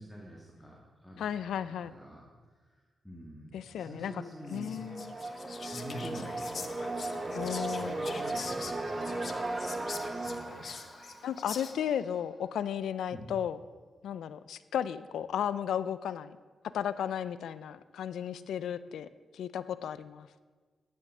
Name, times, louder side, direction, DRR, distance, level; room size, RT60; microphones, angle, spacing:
voice 1, 0.0-1.3 1.6-2.8 3.0-4.8 5.7-6.7 7.2-9.3 10.2-10.6 13.1-13.4, equal, ahead, -4 dB, 1.9 m, -47 dB
voice 2, 1.2-1.9 3.5-4.1 4.5-5.2 7.3-8.0 11.2-13.6 14.0-16.4 16.7-19.1 19.3-20.3, left 9 dB, 90° left, 15 dB, 0.4 m, -34 dB
sound 1, 4.2-12.0, right 2 dB, 30° right, 1.1 m, -37 dB
Whispering, 4.5-12.0, left 5 dB, 55° left, 0.7 m, -44 dB
10.0 x 8.1 x 6.2 m, 1.4 s
cardioid pair, 70°, 0 cm